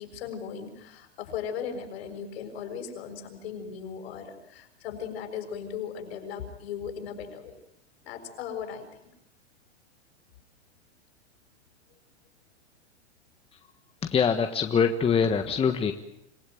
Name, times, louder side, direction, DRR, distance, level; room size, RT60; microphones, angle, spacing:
voice 1, 0.0-7.5 8.0-9.1, left 7 dB, 65° left, 6 dB, 6.5 m, -37 dB
voice 2, 14.0-15.9, left 6 dB, 15° left, 7 dB, 1.4 m, -24 dB
27.0 x 17.0 x 9.2 m, 0.79 s
hypercardioid pair, 120°, 34 cm